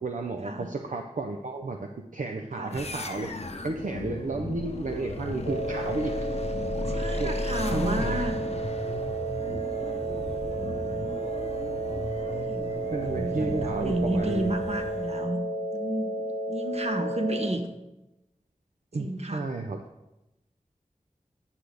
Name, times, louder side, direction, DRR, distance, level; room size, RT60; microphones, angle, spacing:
voice 1, 0.0-1.8 2.1-3.3 3.6-6.1 7.2-7.3 7.7-8.2 12.9-14.5 18.9-19.8, right 3 dB, 65° right, 4 dB, 0.5 m, -32 dB
sound 1, 2.7-15.4, left 2 dB, 50° left, 0.7 m, -35 dB
sound 2, 5.5-17.5, right 2 dB, 90° right, 1.6 m, -32 dB
voice 2, 6.9-8.3 10.6-10.8 12.5-15.4 15.7-17.6 19.0-19.4, right 1 dB, 50° right, 5 dB, 1.0 m, -32 dB
9.7 x 6.5 x 3.4 m, 0.93 s
wide cardioid pair, 50°, 14 cm